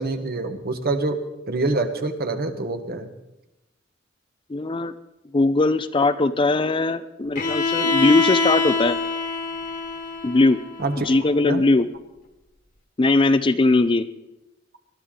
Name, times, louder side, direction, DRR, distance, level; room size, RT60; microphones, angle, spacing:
voice 1, 0.0-3.1 10.8-11.1 11.4-11.6, right 2 dB, 50° right, 7 dB, 1.3 m, -26 dB
voice 2, 4.5-4.9 5.3-9.0 10.2-10.6 11.1-11.9 13.0-14.1, left 2 dB, 25° left, 12 dB, 0.5 m, -19 dB
Bowed string instrument, 7.3-11.2, left 3 dB, 45° left, 1.5 m, -25 dB
20.5 x 12.5 x 3.8 m, 0.95 s
head